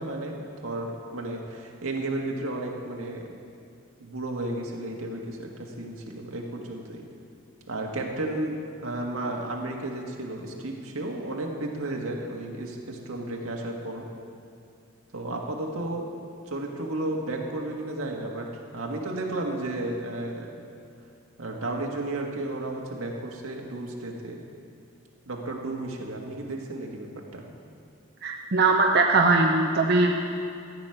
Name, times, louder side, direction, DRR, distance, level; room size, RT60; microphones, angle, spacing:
voice 1, 0.0-3.3 4.0-7.0 7.7-14.0 15.1-16.1 16.5-20.5 21.4-24.4 25.2-27.4, right 2 dB, 85° right, 0 dB, 1.8 m, -33 dB
voice 2, 28.2-30.1, right 3 dB, 50° right, 1 dB, 0.7 m, -20 dB
14.5 x 6.3 x 9.0 m, 2.5 s
head